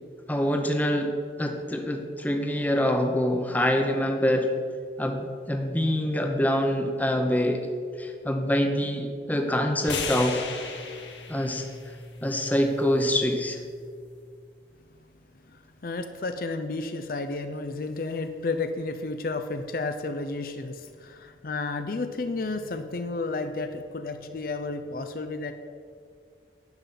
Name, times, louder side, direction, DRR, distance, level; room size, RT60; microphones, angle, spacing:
voice 1, 0.3-4.5 5.0-7.6 8.0-10.4 11.3-11.7 12.2-13.6, equal, 10° left, 4 dB, 0.8 m, -25 dB
sound 1, 9.8-14.0, left 4 dB, 90° left, 1.5 m, -37 dB
voice 2, 15.5-25.5, left 3 dB, 50° left, 8 dB, 0.5 m, -32 dB
10.5 x 5.6 x 7.4 m, 2.1 s
head